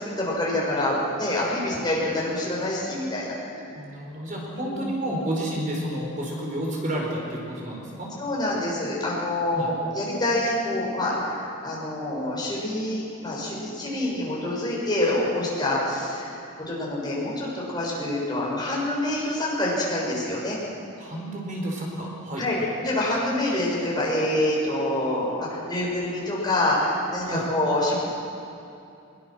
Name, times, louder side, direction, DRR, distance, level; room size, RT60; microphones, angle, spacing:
voice 1, 0.2-3.3 4.4-4.9 8.2-16.3 16.6-20.6 22.4-28.0, left 1 dB, 20° left, -5 dB, 6.9 m, -26 dB
voice 2, 3.7-8.1 9.5-9.7 21.0-22.7 27.2-27.4, right 1 dB, 40° right, -2 dB, 4.8 m, -31 dB
25.0 x 22.0 x 6.5 m, 2.7 s
head